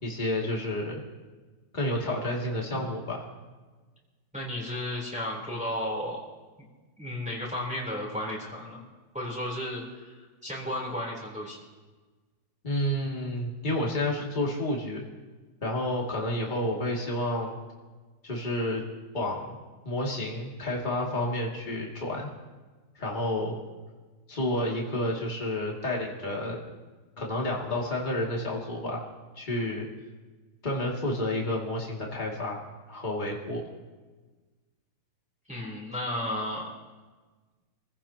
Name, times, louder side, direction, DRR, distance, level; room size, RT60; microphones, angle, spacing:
voice 1, 0.0-1.0 1.7-3.2 12.6-15.1 15.6-17.6 18.2-18.8 19.1-19.6 19.8-22.3 23.0-23.6 24.3-26.6 27.2-29.0 29.4-29.9 30.6-32.6 32.9-33.6, left 1 dB, 25° left, -2 dB, 2.6 m, -30 dB
voice 2, 4.3-6.2 6.6-6.7 7.0-8.8 9.1-11.6 35.5-36.7, left 1 dB, 5° right, -4 dB, 3.6 m, -33 dB
28.5 x 16.0 x 2.9 m, 1.3 s
omnidirectional pair, 1.9 m